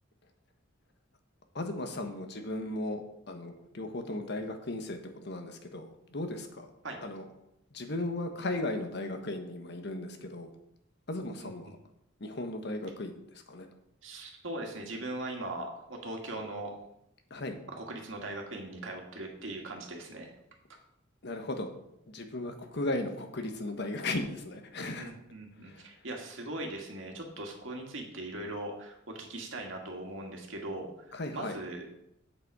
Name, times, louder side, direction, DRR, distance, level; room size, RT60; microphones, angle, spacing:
voice 1, 1.5-6.7 7.0-7.3 7.7-10.5 11.1-11.8 12.2-13.7 17.3-17.6 21.2-21.7 22.1-25.1 25.6-25.8 31.1-31.6, left 2 dB, 60° left, 6 dB, 1.2 m, -36 dB
voice 2, 14.0-16.7 17.8-20.3 25.0-31.9, right 2 dB, 85° right, 1 dB, 2.0 m, -40 dB
7.9 x 7.7 x 4.8 m, 0.79 s
head